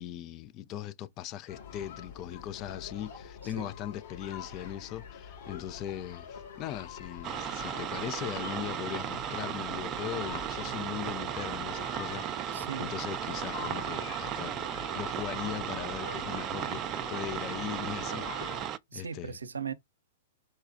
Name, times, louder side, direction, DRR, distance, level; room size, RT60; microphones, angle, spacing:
voice 1, 0.0-14.5 14.9-19.4, left 11 dB, 35° left, 0.4 m, -39 dB
sound 1, 1.5-18.7, left 7 dB, 50° left, 2.5 m, -45 dB
sound 2, 7.2-18.8, right 11 dB, 30° right, 0.4 m, -35 dB
voice 2, 12.5-12.9 18.9-19.7, right 6 dB, 80° right, 0.6 m, -38 dB
4.2 x 2.3 x 2.5 m
figure-of-eight pair, 110°, 0 cm